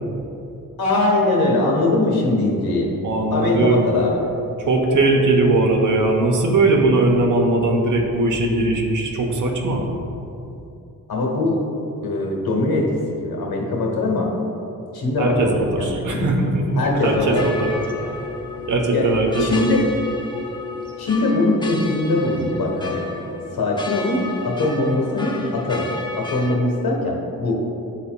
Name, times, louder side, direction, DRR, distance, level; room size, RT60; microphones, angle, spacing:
voice 1, 0.8-2.9 3.3-4.2 11.1-11.6 12.0-12.9 13.2-14.3 14.9-16.3 16.7-17.5 18.9-19.1 19.4-19.8 21.0-23.1 23.5-25.9 26.2-27.6, left 2 dB, 80° left, -1 dB, 1.3 m, -21 dB
voice 2, 3.0-3.9 4.7-9.9 15.2-17.7 18.0-18.1 18.7-19.8, right 2 dB, 55° right, 0 dB, 1.0 m, -19 dB
sound 1, 17.0-26.6, left 3 dB, 10° left, 0.9 m, -33 dB
11.0 x 4.1 x 2.3 m, 2.8 s
cardioid pair, 50°, 36 cm